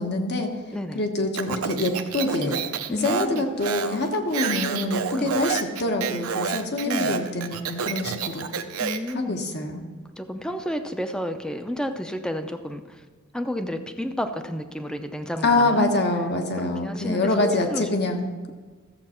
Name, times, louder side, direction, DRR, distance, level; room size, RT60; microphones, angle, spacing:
voice 1, 0.0-0.6 0.9-2.6 2.9-8.5 9.1-9.8 15.4-18.3, left 2 dB, 50° left, 4 dB, 1.2 m, -25 dB
Speech, 1.3-9.1, right 6 dB, 75° right, 0.7 m, -29 dB
voice 2, 2.9-3.4 5.1-5.3 6.8-7.2 8.8-9.4 10.2-13.0 13.3-15.9 16.6-17.9, equal, 5° left, 8 dB, 0.6 m, -31 dB
14.0 x 7.4 x 4.4 m, 1.4 s
head